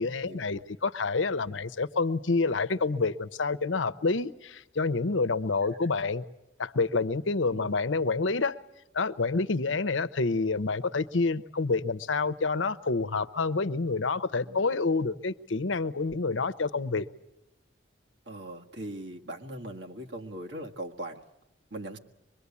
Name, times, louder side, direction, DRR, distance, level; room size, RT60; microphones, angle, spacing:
voice 1, 0.0-6.2 6.6-8.6 8.9-17.1, left 3 dB, 85° left, 0.9 m, -28 dB
voice 2, 18.3-21.2 21.7-22.0, right 1 dB, 65° right, 1.6 m, -40 dB
24.5 x 22.5 x 8.4 m
head